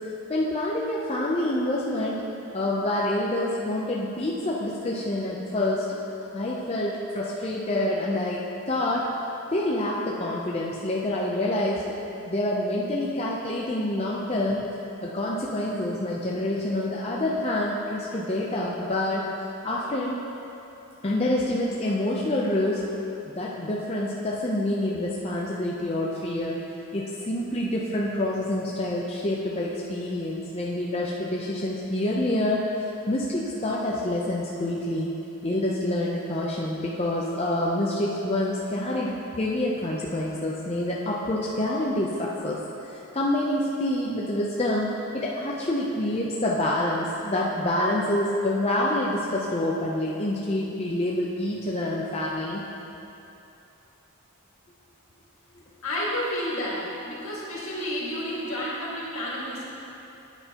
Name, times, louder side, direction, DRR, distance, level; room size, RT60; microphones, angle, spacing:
voice 1, 0.3-2.2 2.5-6.0 6.3-9.1 9.5-12.0 12.3-14.7 15.0-19.3 19.6-20.2 21.0-22.8 23.3-26.6 26.9-35.1 35.4-52.6, left 1 dB, 25° left, -4 dB, 0.6 m, -27 dB
voice 2, 55.8-59.7, equal, 70° left, -6 dB, 2.0 m, -30 dB
9.9 x 8.9 x 2.9 m, 3.0 s
head